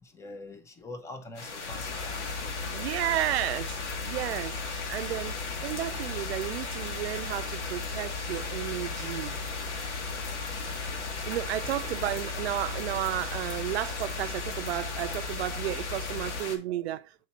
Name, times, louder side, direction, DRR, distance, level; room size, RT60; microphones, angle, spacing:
voice 1, 0.1-2.9 11.6-12.0, left 2 dB, 10° left, 0.6 m, -45 dB
sound 1, 1.3-16.6, left 4 dB, 85° left, 1.8 m, -37 dB
sound 2, 1.7-16.4, left 3 dB, 65° left, 1.7 m, -39 dB
voice 2, 2.7-4.6 4.9-5.3 5.6-9.4 11.2-17.3, right 14 dB, 65° right, 0.5 m, -32 dB
5.9 x 4.5 x 4.1 m
hypercardioid pair, 140°, 34 cm